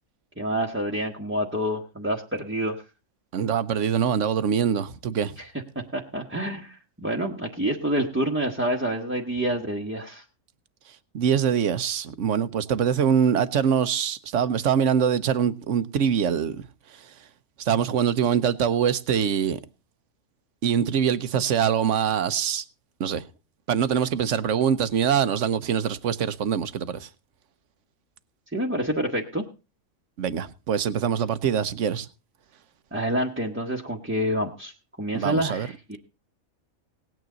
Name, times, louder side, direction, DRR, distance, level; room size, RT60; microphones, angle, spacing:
voice 1, 0.4-2.8 5.4-5.5 5.7-10.2 28.5-29.4 32.9-36.0, right 1 dB, 10° right, 1.2 m, -28 dB
voice 2, 3.3-5.4 11.1-16.6 16.9-17.0 17.6-19.6 20.6-22.6 23.0-23.2 23.7-27.1 30.2-32.1 35.1-35.7, right 8 dB, 65° right, 1.1 m, -24 dB
18.5 x 9.3 x 3.9 m
omnidirectional pair, 1.5 m